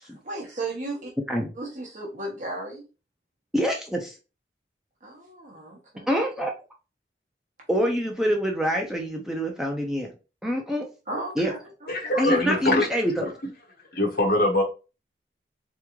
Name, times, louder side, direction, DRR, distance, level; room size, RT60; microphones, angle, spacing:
voice 1, 0.0-1.1 1.5-2.8 5.0-6.1 11.1-12.2, right 2 dB, 45° right, 1.1 m, -35 dB
voice 2, 3.5-4.1 6.1-6.5 7.7-10.1 10.4-10.9 11.4-11.5 12.2-13.3, equal, 5° right, 0.5 m, -25 dB
voice 3, 11.9-12.9 13.2-13.3 13.9-14.6, left 1 dB, 55° left, 1.2 m, -23 dB
3.9 x 3.6 x 3.0 m
head